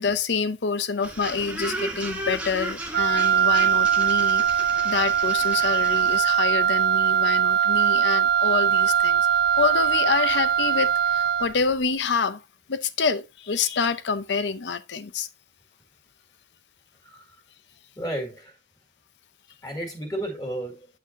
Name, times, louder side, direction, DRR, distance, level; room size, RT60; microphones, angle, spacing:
voice 1, 0.0-4.4 4.8-9.2 9.6-12.4 12.7-15.3, left 5 dB, 80° left, 0.6 m, -27 dB
sound 1, 1.0-6.2, right 1 dB, 5° right, 1.2 m, -34 dB
Wind instrument woodwind instrument, 2.9-11.6, right 8 dB, 60° right, 0.6 m, -21 dB
voice 2, 18.0-18.5 19.6-20.9, right 1 dB, 20° left, 1.9 m, -32 dB
8.5 x 6.0 x 2.6 m
head